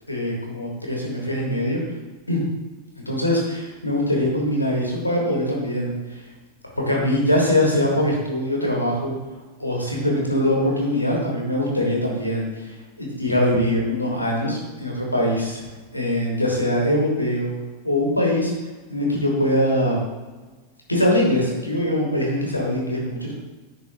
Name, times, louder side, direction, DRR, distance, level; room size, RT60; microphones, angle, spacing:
voice 1, 0.1-1.8 2.3-2.4 3.0-6.2 6.7-9.1 9.6-15.6 15.9-17.5 17.8-18.5 18.9-20.0 20.9-23.3, left 1 dB, 85° left, -2 dB, 1.4 m, -22 dB
10.5 x 3.8 x 2.7 m, 1.3 s
figure-of-eight pair, 90°, 0 cm